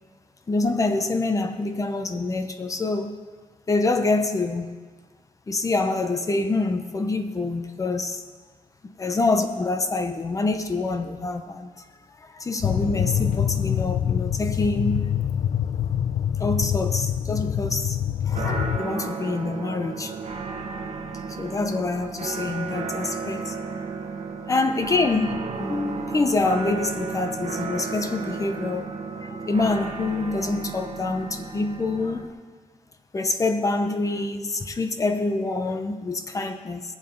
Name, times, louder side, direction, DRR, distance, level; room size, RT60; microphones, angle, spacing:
voice 1, 0.5-3.1 3.7-4.7 5.5-8.2 9.0-11.7 12.3-15.1 16.4-18.0 18.3-20.1 21.3-23.6 24.5-28.9 29.2-32.3 33.1-36.8, left 3 dB, 25° left, 0.8 m, -26 dB
sound 1, 12.6-18.8, left 9 dB, 60° left, 0.5 m, -25 dB
sound 2, 18.3-32.3, right 5 dB, 50° right, 1.3 m, -33 dB
20.5 x 7.4 x 5.2 m
wide cardioid pair, 175°, 14 cm